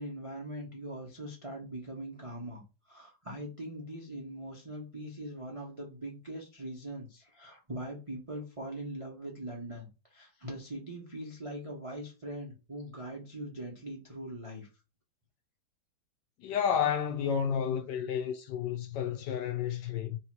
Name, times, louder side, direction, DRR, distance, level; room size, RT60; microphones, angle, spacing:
voice 1, 0.0-14.7, right 1 dB, 45° right, 0.4 m, -41 dB
voice 2, 16.4-20.2, left 8 dB, 70° left, 1.1 m, -31 dB
3.2 x 3.1 x 4.4 m
omnidirectional pair, 2.2 m